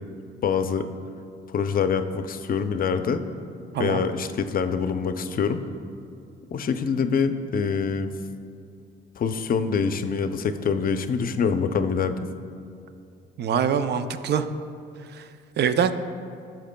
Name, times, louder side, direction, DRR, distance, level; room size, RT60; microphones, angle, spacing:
voice 1, 0.4-0.9 1.5-3.2 3.8-5.6 6.5-8.1 9.2-12.2, left 6 dB, 45° left, 9 dB, 0.5 m, -25 dB
voice 2, 13.4-14.5 15.1-15.3 15.6-15.9, right 7 dB, 55° right, 10 dB, 0.5 m, -24 dB
15.5 x 5.9 x 2.2 m, 2.4 s
cardioid pair, 90°, 20 cm